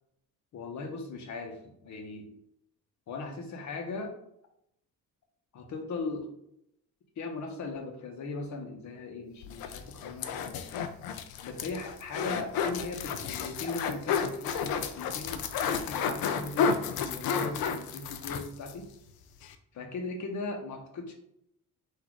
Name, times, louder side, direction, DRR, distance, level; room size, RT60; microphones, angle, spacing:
voice 1, 0.5-2.3 3.1-4.2 5.5-6.3 7.2-10.6 11.4-18.9 19.7-21.1, left 3 dB, 55° left, 2 dB, 1.0 m, -38 dB
sound 1, 9.4-18.8 19.1-19.2 19.4-19.6, left 6 dB, 90° left, 0.5 m, -32 dB
4.1 x 2.7 x 4.6 m, 0.74 s
cardioid pair, 150°, 35 cm